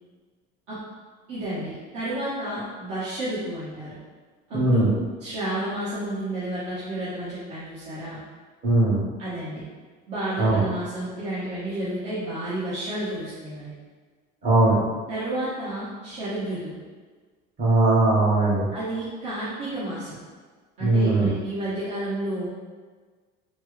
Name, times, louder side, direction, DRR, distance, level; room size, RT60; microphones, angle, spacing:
voice 1, 1.3-4.0 4.5-4.8 5.2-8.2 9.2-9.6 10.1-13.7 15.1-16.8 18.7-20.2 20.8-22.5, right 1 dB, 60° right, -11 dB, 1.2 m, -31 dB
voice 2, 4.5-4.9 8.6-9.0 10.4-10.6 14.4-14.8 17.6-18.6 20.8-21.3, right 2 dB, 35° right, -8 dB, 1.5 m, -19 dB
4.2 x 2.1 x 3.2 m, 1.5 s
cardioid pair, 145°, 21 cm